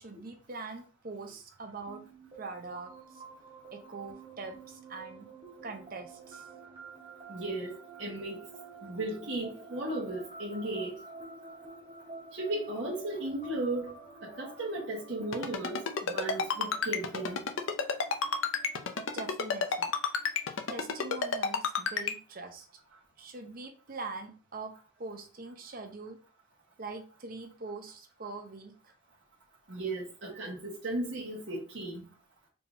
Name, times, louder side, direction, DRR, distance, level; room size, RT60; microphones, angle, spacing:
voice 1, 0.0-2.1 2.4-3.2 3.7-5.3 5.6-6.5 19.1-19.9 20.7-22.7 23.2-26.2 26.8-28.9 30.3-30.4, right 3 dB, 45° right, 0.7 m, -43 dB
sound 1, 1.9-21.4, right 3 dB, 25° right, 1.5 m, -50 dB
voice 2, 7.3-8.4 8.8-11.0 12.3-14.0 14.2-17.4 29.7-32.1, right 2 dB, 65° right, 1.2 m, -36 dB
Ringtone, 15.3-22.1, left 5 dB, 75° left, 0.5 m, -30 dB
4.5 x 3.3 x 2.6 m
head